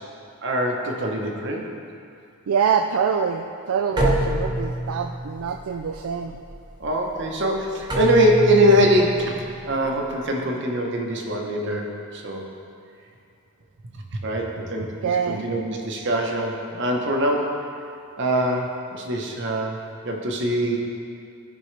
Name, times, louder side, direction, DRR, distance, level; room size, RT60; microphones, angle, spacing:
voice 1, 0.4-1.6 6.8-12.4 13.9-17.7 18.2-20.8, equal, 55° right, 1 dB, 1.0 m, -23 dB
voice 2, 2.5-6.4 15.0-15.4, right 6 dB, 75° right, 4 dB, 0.3 m, -25 dB
sound 1, 4.0-10.2, right 1 dB, 20° right, 0.9 m, -27 dB
13.5 x 5.3 x 3.3 m, 2.4 s
head